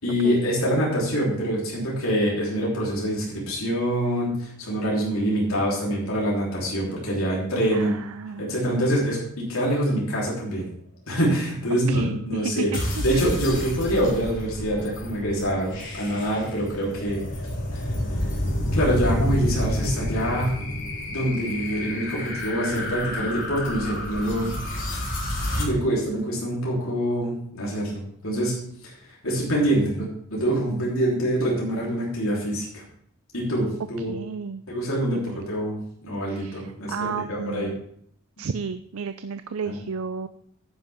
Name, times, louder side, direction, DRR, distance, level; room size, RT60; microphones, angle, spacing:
voice 1, 0.0-8.0 8.4-10.7 11.1-12.7 13.0-17.2 17.7-17.8 18.7-20.5 21.1-24.5 24.9-25.0 25.6-28.5 28.8-30.0 30.3-32.8 33.3-34.1 34.7-37.7 39.6-39.8, equal, 85° left, -5 dB, 3.5 m, -25 dB
voice 2, 7.7-8.7 11.9-12.7 13.1-13.2 24.2-24.6 34.1-34.6 35.1-35.4 36.3-37.8 38.4-40.3, right 5 dB, 90° right, 11 dB, 0.5 m, -33 dB
sound 1, 12.7-25.6, left 1 dB, 60° left, 3.8 m, -29 dB
10.5 x 9.9 x 3.5 m, 0.68 s
head